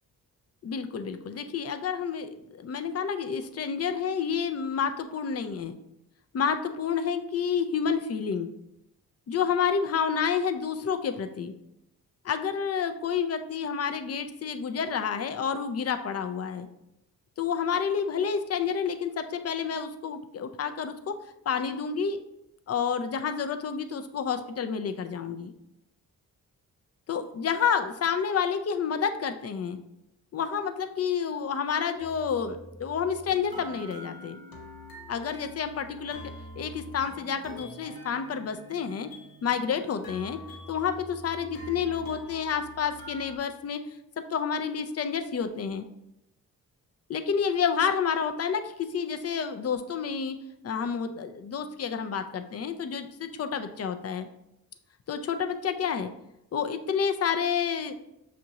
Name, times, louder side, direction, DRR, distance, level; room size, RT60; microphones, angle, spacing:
voice 1, 0.6-5.7 6.3-8.5 9.3-11.5 12.2-16.7 17.4-21.2 21.5-22.2 22.7-25.5 27.1-29.8 30.3-34.4 35.1-39.1 39.4-43.8 44.2-45.8 47.1-54.3 55.1-56.1 56.5-57.9, left 7 dB, 45° left, 8 dB, 0.5 m, -29 dB
sound 1, 32.0-43.4, left 1 dB, 70° left, 1.0 m, -46 dB
6.0 x 2.5 x 2.8 m, 0.84 s
cardioid pair, 65°, 37 cm